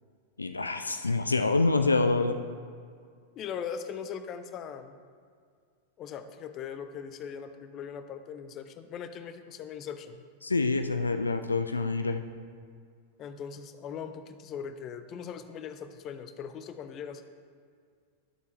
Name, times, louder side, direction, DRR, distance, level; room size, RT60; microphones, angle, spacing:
voice 1, 0.4-2.4 10.4-12.2, left 3 dB, 80° left, 9 dB, 0.4 m, -26 dB
voice 2, 3.4-4.9 6.0-10.2 13.2-17.2, left 7 dB, 35° left, 9 dB, 0.6 m, -40 dB
11.5 x 7.0 x 3.2 m, 2.1 s
figure-of-eight pair, 90°, 0 cm